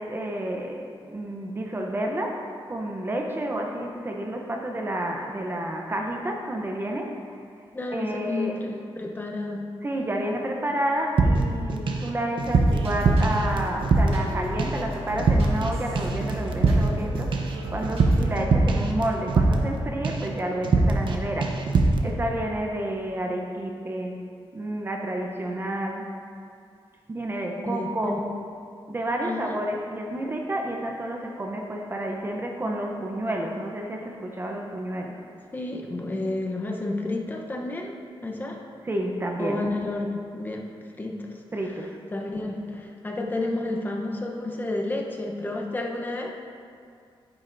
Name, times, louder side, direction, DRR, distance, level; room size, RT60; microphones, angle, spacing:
voice 1, 0.0-7.2 7.9-8.6 9.8-21.7 22.0-24.3 24.5-26.1 27.1-28.3 28.9-35.2 38.8-39.6 41.5-42.0, right 1 dB, 25° right, 2 dB, 0.7 m, -30 dB
voice 2, 7.7-9.7 27.7-28.2 29.2-29.6 35.5-37.9 38.2-38.6 39.4-40.6 41.0-41.7 42.1-46.3, left 2 dB, 20° left, 1 dB, 0.8 m, -31 dB
sound 1, 11.2-12.1 12.4-14.3 14.6-14.9 15.2-15.7 16.0-19.8 20.0-20.3 20.6-21.2 21.4-22.0, right 3 dB, 60° right, 0.8 m, -22 dB
sound 2, 12.4-18.2, right 1 dB, 80° right, 1.5 m, -35 dB
10.5 x 9.7 x 2.6 m, 2.3 s
wide cardioid pair, 165°, 9 cm